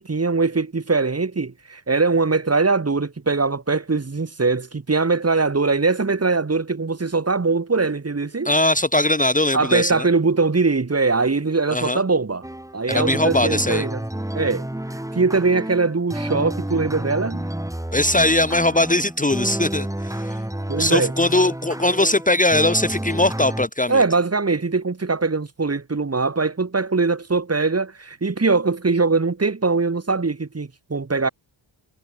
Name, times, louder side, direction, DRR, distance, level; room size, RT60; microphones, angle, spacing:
voice 1, 0.0-8.5 9.5-12.4 12.7-14.0 14.3-14.7 14.9-17.5 20.7-21.1 23.9-31.3, right 4 dB, 30° right, 3.6 m, -21 dB
voice 2, 8.4-10.1 11.7-12.0 12.9-13.9 17.9-20.4 20.8-24.0, left 2 dB, 15° left, 1.5 m, -20 dB
sound 1, 12.4-23.7, right 1 dB, 5° right, 4.3 m, -30 dB
cardioid pair, 85°, 47 cm